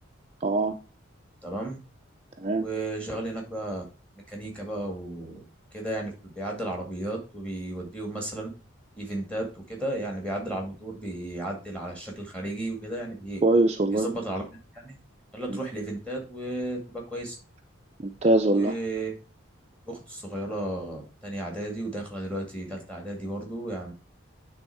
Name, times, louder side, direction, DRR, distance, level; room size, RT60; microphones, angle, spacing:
voice 1, 0.4-0.8 2.4-2.7 13.4-14.1 15.5-15.6 18.0-18.7, right 2 dB, 30° right, 5 dB, 0.5 m, -22 dB
voice 2, 1.4-1.8 2.6-3.8 4.2-5.4 5.7-8.5 9.0-13.4 13.9-14.4 14.7-15.0 15.3-17.3 18.5-19.1 19.9-23.9, right 1 dB, 5° left, 1 dB, 2.2 m, -34 dB
9.1 x 3.6 x 4.5 m, 0.33 s
head